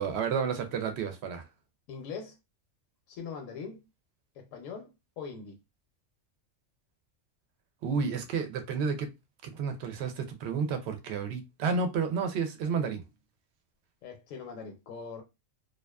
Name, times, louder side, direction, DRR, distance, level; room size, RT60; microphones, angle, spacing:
voice 1, 0.0-1.4 7.8-9.1 9.4-13.0, right 5 dB, 65° right, 0.8 m, -31 dB
voice 2, 1.9-2.4 3.1-3.8 4.3-4.9 5.2-5.6 14.0-15.2, left 5 dB, 80° left, 0.9 m, -41 dB
2.4 x 2.3 x 2.2 m
omnidirectional pair, 1.4 m